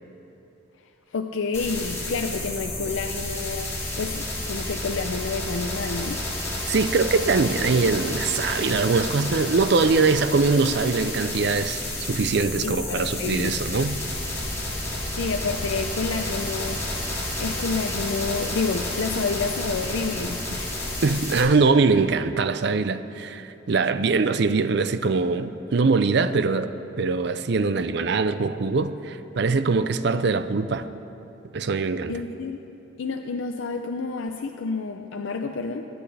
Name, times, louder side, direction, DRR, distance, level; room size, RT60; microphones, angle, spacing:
voice 1, 1.1-6.2 12.6-13.5 15.2-16.8 17.4-20.9 32.1-32.6 33.0-35.8, left 4 dB, 80° left, 5 dB, 0.5 m, -29 dB
sound 1, 1.5-21.4, left 1 dB, 15° left, 2.1 m, -31 dB
voice 2, 6.7-14.0 21.0-26.7 27.0-30.9 31.5-32.2, right 4 dB, 60° right, 12 dB, 0.5 m, -22 dB
sound 2, 14.0-21.1, equal, 50° left, 1.3 m, -39 dB
22.0 x 9.7 x 3.4 m, 3.0 s
head